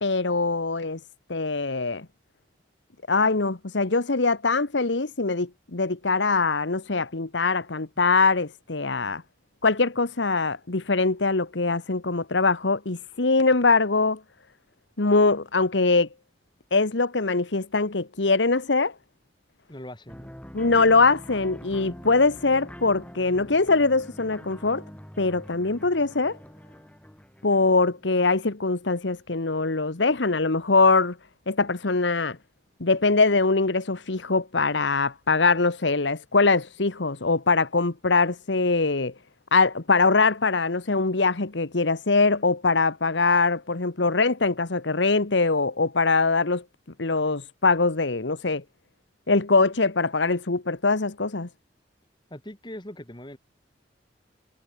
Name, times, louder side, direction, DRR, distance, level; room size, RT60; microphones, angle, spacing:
voice 1, 0.0-1.0 1.3-2.1 3.1-9.2 9.6-14.2 15.0-16.1 16.7-18.9 20.5-24.8 25.2-26.4 27.4-31.2 31.5-32.4 32.8-39.1 39.5-46.6 47.0-48.6 49.3-51.5, left 3 dB, 85° left, 1.4 m, -22 dB
voice 2, 19.7-20.3 52.3-53.4, left 1 dB, 25° left, 3.4 m, -41 dB
sound 1, 20.1-28.4, equal, 5° left, 4.9 m, -44 dB
head